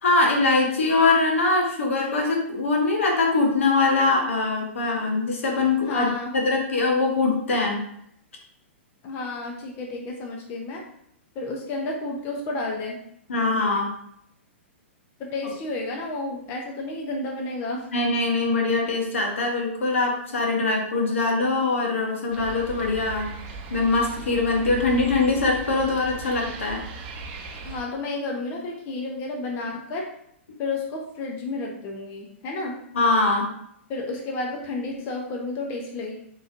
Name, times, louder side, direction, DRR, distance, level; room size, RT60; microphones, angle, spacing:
voice 1, 0.0-7.8 13.3-13.9 17.9-23.3 23.7-26.8 32.9-33.5, left 3 dB, 75° left, 1 dB, 1.0 m, -22 dB
voice 2, 5.8-6.3 9.0-10.8 11.3-13.0 15.2-17.9 27.6-30.1 30.6-32.7 33.9-36.2, left 2 dB, 35° left, 0 dB, 0.7 m, -31 dB
sound 1, 22.3-27.8, right 3 dB, 40° right, 0.6 m, -37 dB
3.9 x 3.1 x 2.5 m, 0.71 s
hypercardioid pair, 120°, 7 cm